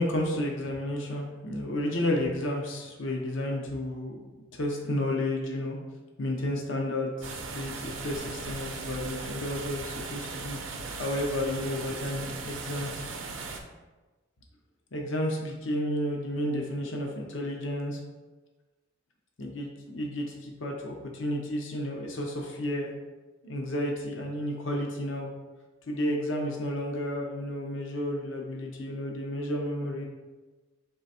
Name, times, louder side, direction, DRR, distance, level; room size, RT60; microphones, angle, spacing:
voice 1, 0.0-4.2 4.5-5.8 6.2-13.1 14.9-18.0 19.4-22.9 23.4-25.3 25.9-30.0, left 1 dB, 65° left, 0 dB, 0.7 m, -32 dB
sound 1, 7.2-13.6, right 4 dB, 70° right, 0.6 m, -38 dB
3.8 x 3.3 x 4.2 m, 1.2 s
head